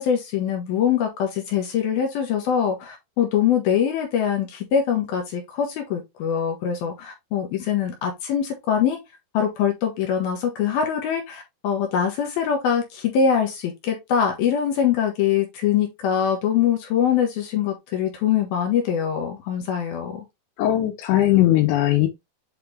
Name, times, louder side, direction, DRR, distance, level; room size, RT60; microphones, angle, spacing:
voice 1, 0.0-9.0 9.3-20.2, left 8 dB, 70° left, 2.5 m, -23 dB
voice 2, 20.6-22.1, left 14 dB, 90° left, 3.1 m, -19 dB
8.3 x 3.6 x 3.3 m
omnidirectional pair, 5.2 m